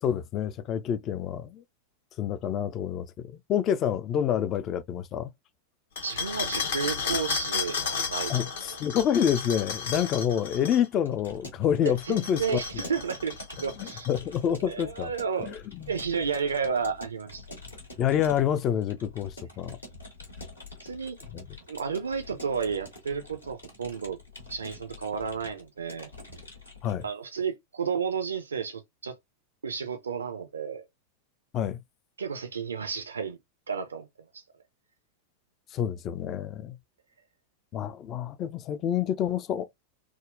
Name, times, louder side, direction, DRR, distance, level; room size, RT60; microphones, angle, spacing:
voice 1, 0.0-1.6 2.2-5.3 8.3-12.9 13.8-15.1 15.4-15.9 18.0-19.8 21.3-21.4 26.8-27.0 31.5-31.8 35.7-36.8 37.7-39.7, left 9 dB, 35° left, 0.3 m, -28 dB
sound 1, 6.0-10.8 11.9-14.4, left 6 dB, 60° left, 0.8 m, -33 dB
voice 2, 6.0-8.8 11.9-14.1 14.6-15.6 15.9-17.5 20.8-21.2 21.7-24.2 24.5-26.1 27.0-29.2 29.6-30.9 32.2-33.4 33.7-34.1 34.3-34.4, right 6 dB, 70° right, 0.4 m, -32 dB
Keyboard (musical) / Computer keyboard, 11.0-27.0, left 2 dB, 75° left, 1.4 m, -46 dB
3.6 x 2.0 x 2.4 m
figure-of-eight pair, 90°, 0 cm